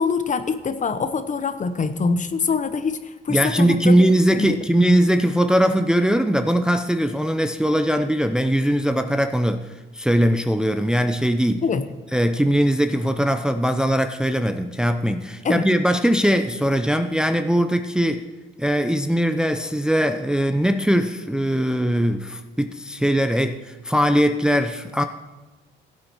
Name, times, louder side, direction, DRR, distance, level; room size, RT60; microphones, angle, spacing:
voice 1, 0.0-4.0 4.3-4.6 11.6-11.8 15.4-15.6, left 5 dB, 40° left, 11 dB, 0.9 m, -24 dB
voice 2, 3.3-9.7 9.9-11.6 12.1-18.2 18.6-25.0, equal, 5° right, 7 dB, 0.6 m, -20 dB
15.5 x 8.7 x 4.5 m, 1.1 s
cardioid pair, 90°, 20 cm